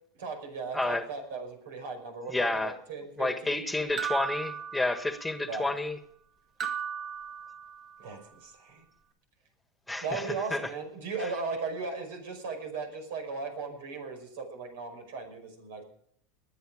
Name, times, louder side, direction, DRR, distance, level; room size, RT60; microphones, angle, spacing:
voice 1, 0.1-3.7 5.5-5.7 8.0-8.8 10.0-15.8, right 4 dB, 90° right, 5 dB, 5.2 m, -37 dB
voice 2, 0.7-1.0 2.3-2.8 3.2-6.0 9.9-10.2 10.5-10.6, left 2 dB, 5° left, 9 dB, 1.4 m, -30 dB
sound 1, 4.0-5.4 6.6-8.1, right 7 dB, 40° right, 1.9 m, -36 dB
20.5 x 9.6 x 5.0 m, 0.65 s
supercardioid pair, 120°, 0 cm